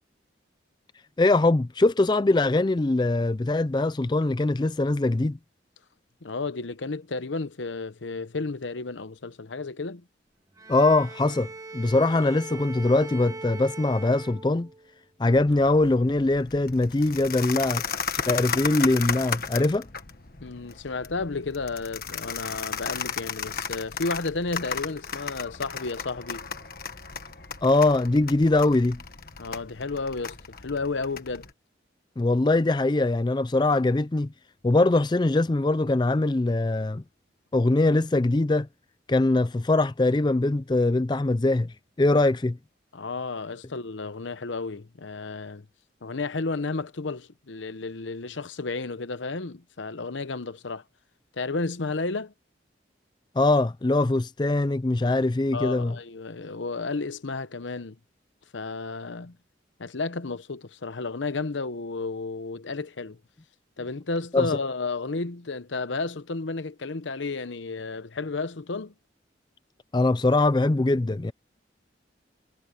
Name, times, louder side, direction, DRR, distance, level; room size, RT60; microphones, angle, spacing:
voice 1, 1.2-5.4 10.7-14.7 15.2-17.8 18.3-19.9 27.6-29.0 32.2-34.3 34.6-37.0 37.5-38.7 39.1-42.6 53.4-56.0 64.3-64.5 69.9-71.3, left 2 dB, 25° left, 0.4 m, -22 dB
voice 2, 6.2-10.0 20.4-26.5 29.4-31.5 42.9-45.7 46.0-50.8 51.4-52.3 55.5-58.0 58.5-59.4 59.8-63.2 63.8-68.9, left 3 dB, 85° left, 0.9 m, -32 dB
Bowed string instrument, 10.6-15.0, right 3 dB, 20° right, 1.4 m, -40 dB
sound 1, 15.2-31.5, left 6 dB, 50° left, 1.5 m, -35 dB
head